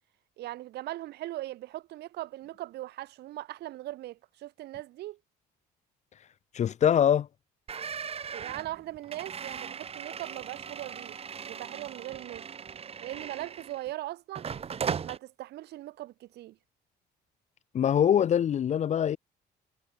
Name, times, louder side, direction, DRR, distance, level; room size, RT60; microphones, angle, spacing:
voice 1, 0.4-5.2 8.3-11.2 11.4-12.5 13.0-14.5 15.0-16.6, right 15 dB, 75° right, 3.7 m, -40 dB
voice 2, 6.5-7.3 17.7-19.2, left 9 dB, 45° left, 0.7 m, -23 dB
sound 1, 7.7-13.9 14.4-15.2, right 7 dB, 35° right, 1.7 m, -38 dB
cardioid pair, 110°, 17 cm